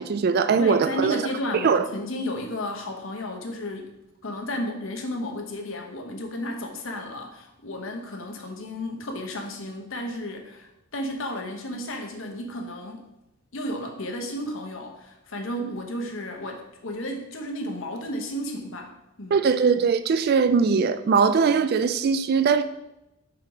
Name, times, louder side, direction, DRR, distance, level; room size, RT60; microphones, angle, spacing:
voice 1, 0.0-1.2 1.6-1.9 19.3-22.6, right 5 dB, 45° right, 0.3 m, -21 dB
voice 2, 0.6-3.9 4.2-13.1 13.5-19.4, left 1 dB, 60° left, 1.0 m, -33 dB
5.5 x 4.6 x 4.8 m
head